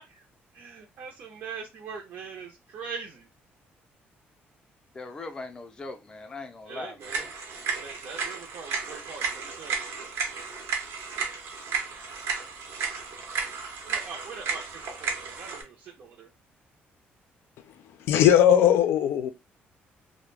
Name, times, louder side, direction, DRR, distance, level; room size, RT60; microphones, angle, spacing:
voice 1, 0.5-3.3 6.6-7.3 7.8-9.8 13.8-16.3, right 5 dB, 55° right, 0.5 m, -42 dB
voice 2, 4.9-6.9, left 3 dB, 20° left, 0.4 m, -39 dB
sound 1, 7.0-15.6, right 6 dB, 85° right, 0.8 m, -33 dB
voice 3, 18.1-19.3, left 10 dB, 85° left, 0.4 m, -19 dB
2.3 x 2.1 x 3.1 m
cardioid pair, 170°, 4 cm